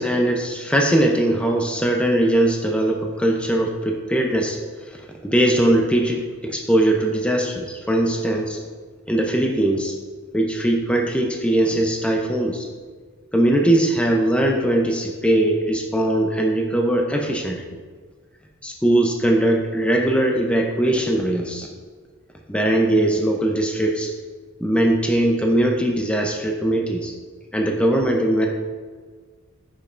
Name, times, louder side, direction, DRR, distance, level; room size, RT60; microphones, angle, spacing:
voice 1, 0.0-4.6 5.2-8.6 9.1-9.9 10.3-12.7 13.3-17.6 18.6-21.7 22.5-24.1 24.6-27.1 27.5-28.5, right 1 dB, 5° left, 1 dB, 0.5 m, -20 dB
9.9 x 5.3 x 2.5 m, 1.5 s
head